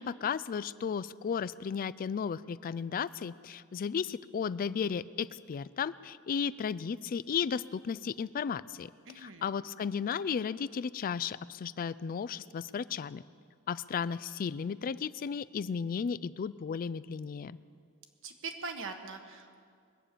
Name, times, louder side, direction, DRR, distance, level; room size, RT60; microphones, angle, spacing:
voice 1, 0.0-8.9 9.2-13.2 13.7-17.6, left 6 dB, 40° left, 18 dB, 0.3 m, -34 dB
voice 2, 9.1-9.5 18.2-19.6, right 4 dB, 60° right, 6 dB, 1.3 m, -42 dB
22.0 x 8.9 x 6.8 m, 2.2 s
head